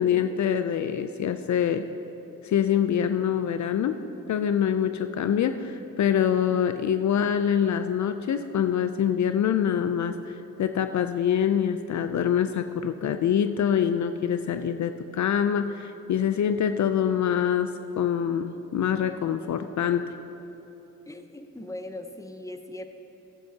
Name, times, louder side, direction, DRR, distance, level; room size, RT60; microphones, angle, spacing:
voice 1, 0.0-1.9 2.4-4.0 4.3-20.1, left 9 dB, 60° left, 9 dB, 0.5 m, -25 dB
voice 2, 21.1-22.8, left 1 dB, 10° left, 7 dB, 0.8 m, -39 dB
14.5 x 10.0 x 2.8 m, 3.0 s
supercardioid pair, 50°, 33 cm